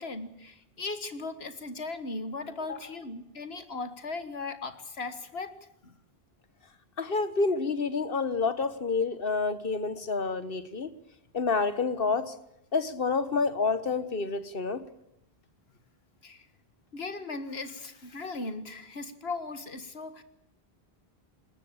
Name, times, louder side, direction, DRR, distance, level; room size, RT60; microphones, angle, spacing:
voice 1, 0.0-5.6 5.8-5.9 16.2-16.5 16.9-20.2, left 3 dB, 80° left, 11 dB, 2.0 m, -37 dB
voice 2, 7.0-10.9 11.3-12.3 12.7-14.8, left 4 dB, 65° left, 13 dB, 1.5 m, -28 dB
21.0 x 18.5 x 8.8 m, 0.81 s
omnidirectional pair, 1.0 m